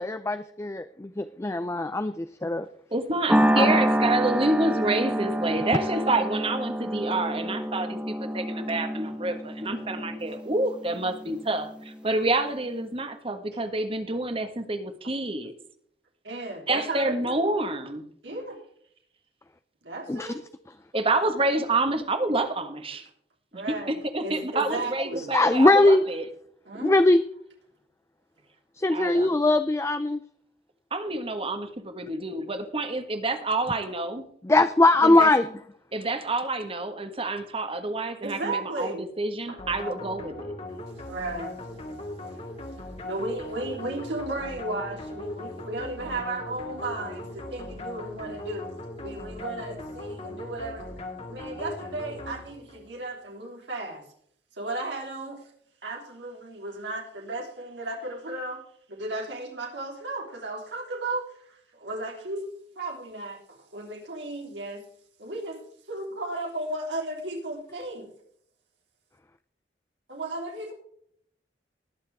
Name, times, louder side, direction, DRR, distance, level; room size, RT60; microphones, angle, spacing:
voice 1, 0.0-2.7 3.6-3.8 20.1-20.3 25.3-26.1 26.7-27.2 28.8-30.2 34.4-35.5, left 2 dB, 15° left, 11 dB, 0.4 m, -21 dB
voice 2, 2.9-15.5 16.7-18.1 20.9-23.1 23.5-23.6 23.9-26.2 28.9-29.4 30.9-34.2 35.0-35.3 35.9-40.6, right 2 dB, 30° right, 8 dB, 1.5 m, -28 dB
sound 1, 3.3-11.8, equal, 5° right, 1.1 m, -27 dB
voice 3, 16.2-17.3 18.2-18.6 19.8-20.4 23.5-23.9 24.2-25.3 26.6-27.0 38.2-39.1 39.5-39.9 41.1-41.5 42.2-42.4 43.0-48.7 49.0-50.8 51.3-54.0 54.6-55.4 55.8-58.6 58.9-62.5 62.7-64.8 65.2-65.6 65.9-68.1 70.1-70.7, right 2 dB, 90° right, 0 dB, 3.4 m, -34 dB
sound 2, 39.6-52.9, left 2 dB, 35° left, 2.0 m, -39 dB
20.0 x 7.2 x 3.5 m, 0.66 s
head